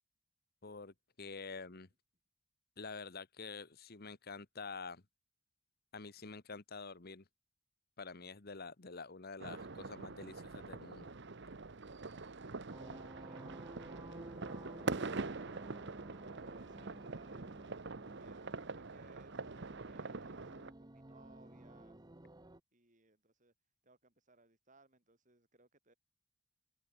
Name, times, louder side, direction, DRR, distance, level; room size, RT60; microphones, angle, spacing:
voice 1, 0.6-1.9 2.8-5.0 5.9-7.2 8.0-11.1, left 4 dB, 50° left, 1.2 m, -48 dB
sound 1, 9.4-20.7, right 3 dB, 55° right, 1.0 m, -44 dB
sound 2, 12.7-22.6, right 1 dB, 20° right, 1.0 m, -54 dB
voice 2, 13.1-14.2 16.4-17.6 18.2-22.0 22.7-23.5 23.8-25.9, right 2 dB, 40° right, 5.9 m, -65 dB
open air
head